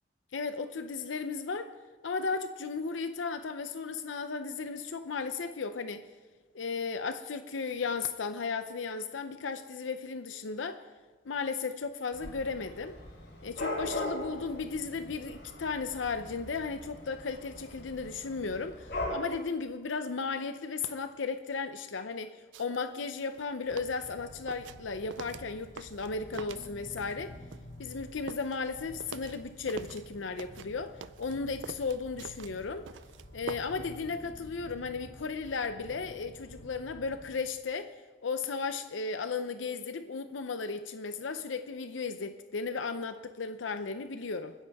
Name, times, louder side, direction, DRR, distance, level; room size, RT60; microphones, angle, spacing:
voice 1, 0.3-1.7 2.0-6.0 6.5-10.8 11.2-13.0 13.4-27.3 27.8-32.9 33.3-37.9 38.2-44.5, left 4 dB, 90° left, 9 dB, 0.6 m, -35 dB
Dog / Cat, 12.1-19.2, left 1 dB, 65° left, 5.0 m, -40 dB
sound 1, 22.5-22.8 23.2-27.2 27.5-30.1 30.4-33.9 34.2-34.3, right 6 dB, 80° right, 0.4 m, -45 dB
sound 2, 23.6-37.3, equal, 50° left, 2.5 m, -50 dB
28.0 x 10.5 x 3.5 m, 1.4 s
head